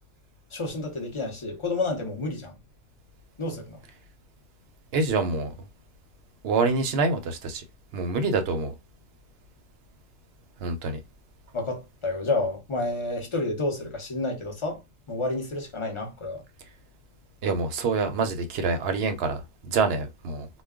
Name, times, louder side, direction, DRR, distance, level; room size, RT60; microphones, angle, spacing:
voice 1, 0.5-2.5 3.4-3.8 11.5-14.8 15.1-16.4, left 2 dB, 30° left, 0.6 m, -30 dB
voice 2, 4.9-5.5 6.4-7.6 7.9-8.7 10.6-11.0 17.4-20.5, right 4 dB, 60° right, 0.8 m, -26 dB
2.3 x 2.2 x 3.5 m
omnidirectional pair, 1.3 m